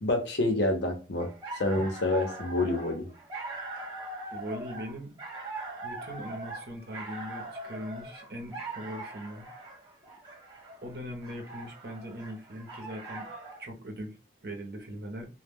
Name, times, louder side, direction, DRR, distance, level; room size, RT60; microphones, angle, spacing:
voice 1, 0.0-1.3 1.6-3.1, left 2 dB, 75° left, 0.7 m, -27 dB
sound 1, 1.2-13.6, right 2 dB, 25° right, 0.8 m, -41 dB
voice 2, 4.3-5.1 5.8-9.5 10.8-13.3 13.6-14.2 14.4-15.3, equal, 60° right, 0.7 m, -40 dB
2.1 x 2.1 x 3.4 m
head